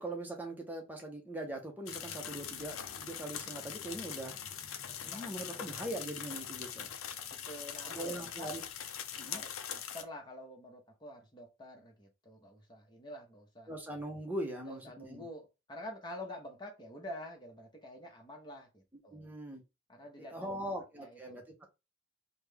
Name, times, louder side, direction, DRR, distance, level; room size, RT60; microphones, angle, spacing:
voice 1, 0.0-4.3 5.0-6.9 7.8-8.6 9.2-9.4 13.7-15.2 19.1-19.6 20.2-21.4, right 1 dB, 10° right, 1 dB, 0.8 m, -41 dB
sound 1, 1.9-10.0, left 8 dB, 90° left, 0.5 m, -42 dB
voice 2, 5.0-5.4 5.8-5.9 6.4-6.6 7.5-8.5 9.3-13.7 14.6-19.3 19.9-21.7, left 1 dB, 20° left, 1 dB, 1.0 m, -48 dB
3.4 x 2.3 x 3.4 m, 0.25 s
head